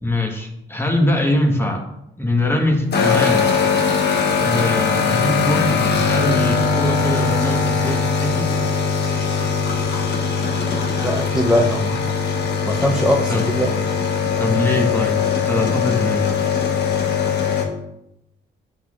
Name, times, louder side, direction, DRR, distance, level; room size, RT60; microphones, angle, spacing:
voice 1, 0.0-1.9 2.2-3.8 4.4-8.5 13.3-13.4 14.4-15.2 15.4-16.3, left 1 dB, 10° left, 1 dB, 1.3 m, -22 dB
sound 1, 2.9-17.6, left 5 dB, 60° left, 1.2 m, -20 dB
voice 2, 11.0-12.0 12.7-13.7, equal, 5° right, -1 dB, 0.8 m, -20 dB
7.9 x 6.3 x 2.5 m, 0.83 s
cardioid pair, 90°, 20 cm